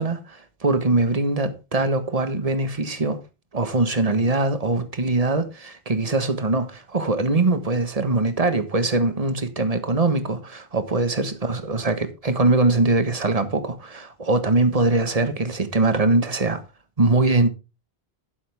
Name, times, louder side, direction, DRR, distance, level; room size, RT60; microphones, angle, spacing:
voice 1, 0.0-3.2 3.5-16.6 17.0-17.5, right 2 dB, 35° right, 1.5 m, -22 dB
12.0 x 9.7 x 3.5 m
omnidirectional pair, 1.1 m